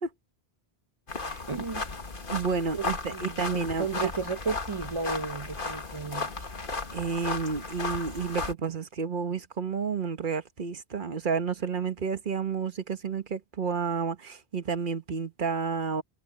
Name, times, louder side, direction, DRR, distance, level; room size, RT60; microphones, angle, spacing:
sound 1, 1.1-8.5, left 3 dB, 55° left, 1.9 m, -35 dB
voice 1, 1.5-1.8 2.7-6.3, right 4 dB, 30° right, 1.1 m, -34 dB
voice 2, 2.3-4.1 6.9-16.0, right 5 dB, 50° right, 1.3 m, -31 dB
omnidirectional pair, 1.1 m